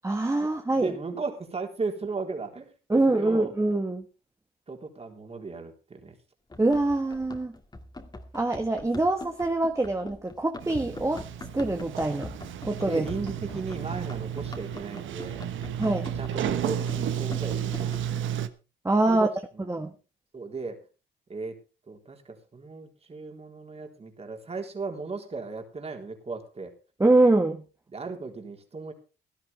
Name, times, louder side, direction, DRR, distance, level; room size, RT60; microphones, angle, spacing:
voice 1, 0.0-0.9 2.9-4.0 6.6-7.5 8.3-11.2 11.5-12.3 12.6-13.1 15.8-16.1 18.8-19.3 19.7-19.9 27.0-27.6, right 2 dB, 15° right, 6 dB, 1.5 m, -24 dB
voice 2, 0.7-2.7 3.1-3.5 4.7-6.2 12.8-15.4 16.2-18.1 19.1-19.8 20.3-20.9 21.3-21.6 21.9-26.7 27.9-28.9, right 4 dB, 30° right, 3 dB, 3.9 m, -36 dB
Run, 6.5-18.2, left 2 dB, 20° left, 2.4 m, -43 dB
Sliding door, 10.6-18.5, right 10 dB, 75° right, 1.3 m, -32 dB
17.0 x 12.5 x 3.5 m, 0.33 s
cardioid pair, 90°, 20 cm